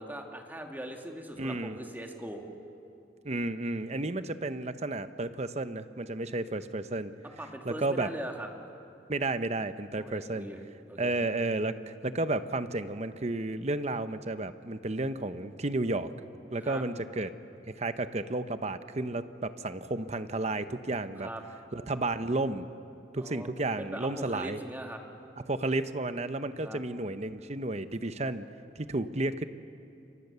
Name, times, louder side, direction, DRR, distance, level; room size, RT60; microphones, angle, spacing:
voice 1, 0.0-2.4 7.4-8.5 9.9-10.6 10.9-11.2 16.6-16.8 21.2-21.4 23.2-23.5 23.8-25.0 26.6-26.8, right 1 dB, 10° right, 2 dB, 2.1 m, -40 dB
voice 2, 1.4-1.8 3.2-7.1 7.6-8.1 9.1-10.5 11.0-16.1 16.5-17.3 17.6-21.3 21.7-22.7 23.1-24.6 25.5-28.5 28.8-29.4, right 2 dB, 40° right, 11 dB, 0.9 m, -32 dB
29.0 x 23.5 x 6.9 m, 2.6 s
head